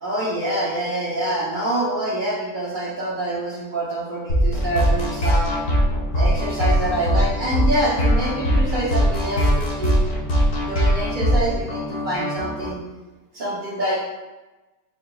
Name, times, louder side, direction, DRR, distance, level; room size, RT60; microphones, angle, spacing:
voice 1, 0.0-5.6 6.1-12.8 13.3-13.9, right 1 dB, 65° right, -6 dB, 0.5 m, -26 dB
sound 1, 4.3-12.7, equal, 80° left, 0.4 m, -20 dB
3.8 x 3.5 x 2.2 m, 1.1 s
omnidirectional pair, 1.7 m